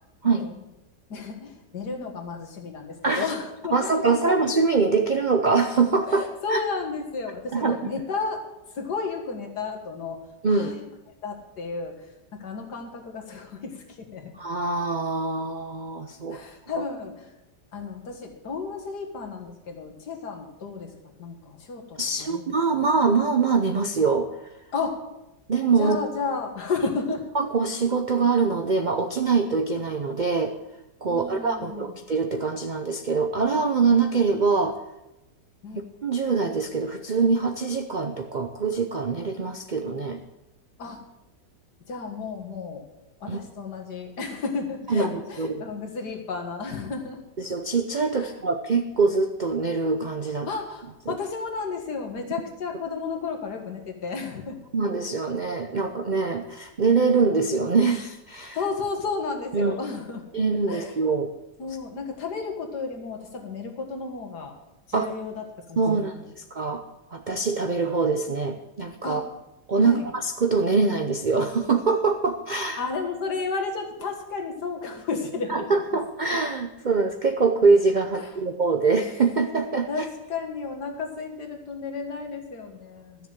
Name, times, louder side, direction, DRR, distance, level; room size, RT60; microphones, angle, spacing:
voice 1, 1.1-4.3 6.1-8.4 8.7-10.8 11.2-14.3 16.3-17.3 17.7-22.9 24.7-25.0 25.8-27.2 31.1-32.0 35.6-35.9 40.8-41.0 41.9-42.9 43.2-47.2 48.2-48.3 50.5-54.6 58.5-60.2 60.7-61.0 61.6-64.5 64.9-66.3 69.0-69.2 69.8-70.1 72.8-75.7 75.9-76.0 78.1-78.3 79.9-83.3, left 4 dB, 65° left, 3 dB, 2.2 m, -33 dB
voice 2, 3.7-6.2 6.5-6.6 7.5-7.8 10.4-10.7 14.4-16.4 16.7-16.8 22.0-24.3 25.5-26.0 27.3-30.5 31.0-34.8 36.0-40.2 43.3-43.4 44.9-45.6 47.4-50.5 51.1-51.2 54.7-58.6 59.5-59.7 60.3-61.3 64.9-65.1 65.8-66.1 66.5-66.8 67.1-69.2 69.7-72.8 75.5-79.9, right 4 dB, 80° right, 6 dB, 0.4 m, -23 dB
13.0 x 7.1 x 7.4 m, 0.95 s
omnidirectional pair, 1.9 m